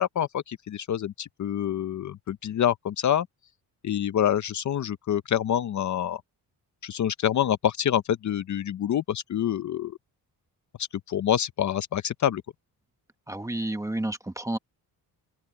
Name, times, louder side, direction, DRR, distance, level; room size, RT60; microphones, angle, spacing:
voice 1, 0.0-3.3 3.8-6.2 6.8-10.0 11.1-12.4, left 10 dB, 45° left, 0.6 m, -26 dB
voice 2, 13.3-14.6, right 1 dB, 10° right, 0.9 m, -30 dB
wide cardioid pair, 160°, 39 cm